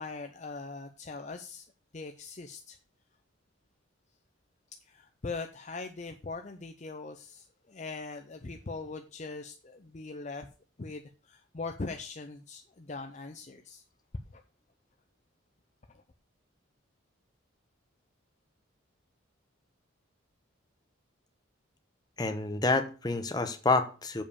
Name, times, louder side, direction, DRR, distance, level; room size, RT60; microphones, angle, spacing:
voice 1, 0.0-1.6 1.9-2.8 4.9-10.5 10.8-13.8 14.3-14.4 15.9-16.0, left 3 dB, 35° left, 0.6 m, -41 dB
voice 2, 22.2-24.2, left 3 dB, 20° left, 0.9 m, -28 dB
7.4 x 5.3 x 6.8 m
head